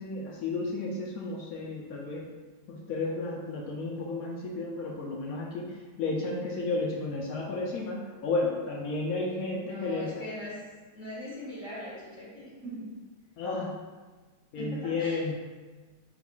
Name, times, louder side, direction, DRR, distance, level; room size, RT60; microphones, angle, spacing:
voice 1, 0.0-2.3 2.7-10.3 13.4-13.7 14.5-15.3, left 3 dB, 75° left, -2 dB, 0.8 m, -32 dB
voice 2, 9.5-10.6 10.9-12.9 14.6-15.3, left 1 dB, 45° left, -9 dB, 1.9 m, -41 dB
4.1 x 2.3 x 4.3 m, 1.3 s
omnidirectional pair, 2.0 m